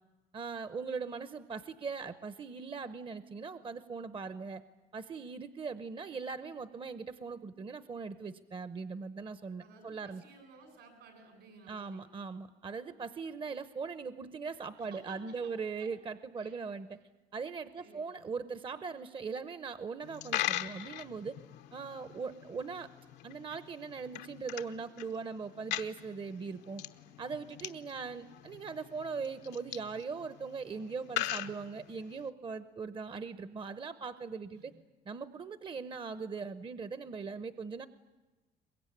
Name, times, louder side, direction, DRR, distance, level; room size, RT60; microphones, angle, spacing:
voice 1, 0.3-4.6 4.9-10.2 11.7-17.0 17.3-21.4 21.7-22.9 23.2-26.8 27.2-34.7 35.1-37.9, right 5 dB, 30° right, 13 dB, 0.8 m, -40 dB
voice 2, 9.6-12.0 14.8-15.5 15.8-15.9 16.3-16.6 16.9-17.0 17.8-18.3 34.5-34.7, right 3 dB, 80° right, 6 dB, 7.8 m, -56 dB
Coin (dropping), 20.0-32.3, left 13 dB, 85° left, 1.1 m, -41 dB
23.5 x 21.5 x 10.0 m, 1.2 s
cardioid pair, 110°, 17 cm